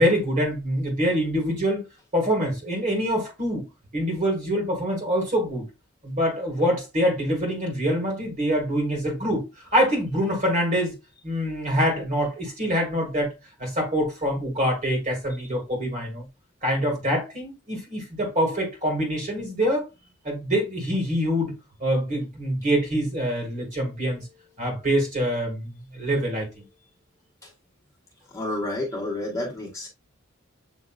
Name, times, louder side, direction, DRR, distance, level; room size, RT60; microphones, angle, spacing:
voice 1, 0.0-1.8 2.1-3.6 3.9-5.7 6.0-9.4 9.7-10.9 11.2-13.3 13.6-16.2 16.6-19.9 20.2-21.5 21.8-24.3 24.6-26.6, equal, 35° right, 1.8 m, -25 dB
voice 2, 28.3-29.9, left 1 dB, 15° left, 1.3 m, -30 dB
7.6 x 2.8 x 2.3 m
head